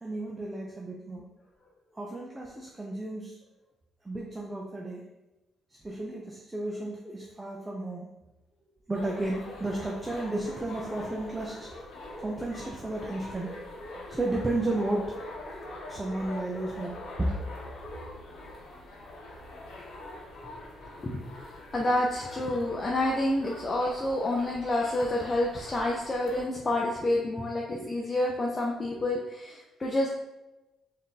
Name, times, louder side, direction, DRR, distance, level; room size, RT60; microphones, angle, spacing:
voice 1, 0.0-1.3 1.9-3.4 4.0-5.1 5.7-8.1 8.9-11.7 12.2-13.6 14.1-15.2 15.9-17.3, right 2 dB, 20° right, -1 dB, 0.5 m, -33 dB
sound 1, 8.9-26.4, left 1 dB, 70° left, 0.9 m, -44 dB
voice 2, 21.0-30.1, left 1 dB, 30° left, -2 dB, 0.6 m, -29 dB
3.7 x 2.7 x 3.8 m, 1.0 s
cardioid pair, 90°, 0 cm